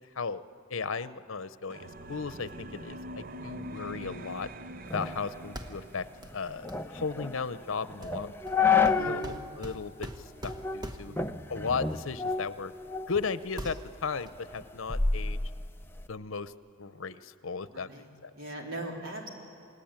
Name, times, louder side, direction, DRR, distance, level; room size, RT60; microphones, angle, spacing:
voice 1, 0.7-4.5 4.9-6.1 6.3-8.3 8.7-11.1 11.5-12.7 13.1-15.4 16.1-16.5 16.8-17.9 18.2-18.3, left 5 dB, 75° left, 14 dB, 0.8 m, -36 dB
sound 1, 1.7-6.3, equal, 45° right, 0.7 m, -43 dB
sound 2, 4.9-9.4 9.7-9.8 10.5-10.8 11.2-13.2 13.6-16.1, left 5 dB, 10° left, 0.6 m, -30 dB
sound 3, 5.6-5.9 6.2-6.4 6.7-6.9 8.0-11.3 12.4-12.5 12.9-13.3 13.5-14.3, equal, 20° right, 1.3 m, -43 dB
voice 2, 9.0-9.5 11.1-11.5 17.7-18.1 18.4-19.3, right 1 dB, 75° right, 0 dB, 3.8 m, -40 dB
29.0 x 19.5 x 8.9 m, 2.5 s
head